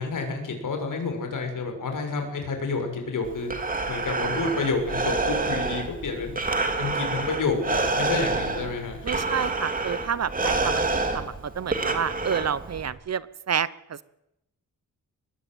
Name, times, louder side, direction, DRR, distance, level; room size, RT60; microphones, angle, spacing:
voice 1, 0.0-3.5 3.9-6.4 6.8-9.1, left 4 dB, 75° left, 5 dB, 6.7 m, -29 dB
Breathing, 3.2-12.9, right 3 dB, 25° right, 2.8 m, -28 dB
voice 2, 9.0-10.8 11.1-13.7, right 8 dB, 55° right, 18 dB, 0.9 m, -29 dB
23.5 x 21.0 x 9.0 m, 0.87 s
wide cardioid pair, 180°, 32 cm